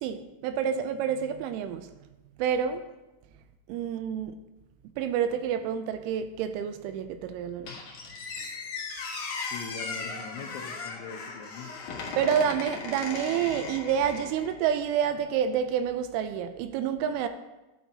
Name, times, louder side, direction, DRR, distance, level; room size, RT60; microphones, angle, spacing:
voice 1, 0.0-1.9 2.4-2.8 3.7-4.3 5.0-7.7 12.2-17.3, right 8 dB, 85° right, 9 dB, 2.9 m, -28 dB
Squeak, 7.7-14.5, left 4 dB, 65° left, 2.0 m, -37 dB
voice 2, 9.5-11.7, left 6 dB, 85° left, 4 dB, 2.9 m, -41 dB
12.0 x 9.0 x 2.8 m, 1.0 s
omnidirectional pair, 5.6 m